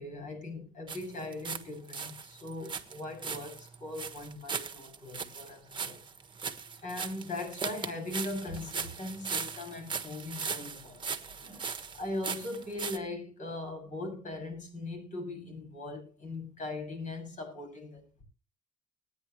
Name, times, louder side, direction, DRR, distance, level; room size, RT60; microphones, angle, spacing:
voice 1, 0.0-6.0 6.8-11.0 11.4-11.7 11.9-18.2, left 2 dB, 50° left, 7.1 m, -40 dB
sound 1, 0.9-1.6 1.9-13.0, right 6 dB, 30° right, 1.4 m, -38 dB
19.5 x 10.0 x 3.2 m
cardioid pair, 110°, 17 cm